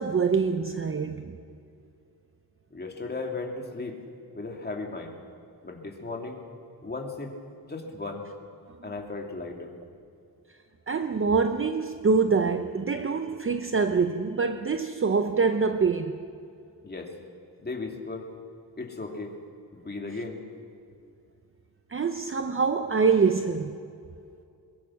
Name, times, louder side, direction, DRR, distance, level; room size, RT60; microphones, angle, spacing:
voice 1, 0.0-1.4 10.9-16.2 21.9-23.8, right 5 dB, 35° right, 0.7 m, -25 dB
voice 2, 2.7-4.0 4.3-5.2 5.6-6.4 6.8-7.3 7.7-8.2 8.8-9.7 16.8-17.1 17.6-18.3 18.8-19.3 19.7-20.4, left 3 dB, 25° left, 2.7 m, -36 dB
22.0 x 21.5 x 6.3 m
wide cardioid pair, 135°, 39 cm